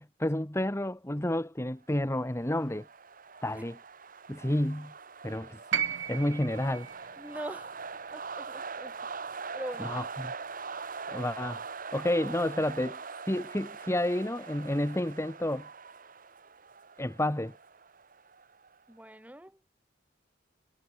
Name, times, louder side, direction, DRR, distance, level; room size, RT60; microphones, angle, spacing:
voice 1, 0.0-2.9 3.4-3.8 4.3-4.9 5.2-5.6 6.1-6.9 9.8-10.3 11.1-11.6 11.9-15.7 17.0-17.6, left 1 dB, 15° left, 1.4 m, -30 dB
sound 1, 2.1-18.8, right 5 dB, 50° right, 2.8 m, -43 dB
sound 2, 5.7-9.9 11.1-11.2, right 8 dB, 75° right, 1.7 m, -36 dB
voice 2, 7.2-7.8 8.1-8.9 9.5-10.0 18.9-19.6, right 1 dB, 10° right, 6.5 m, -42 dB
head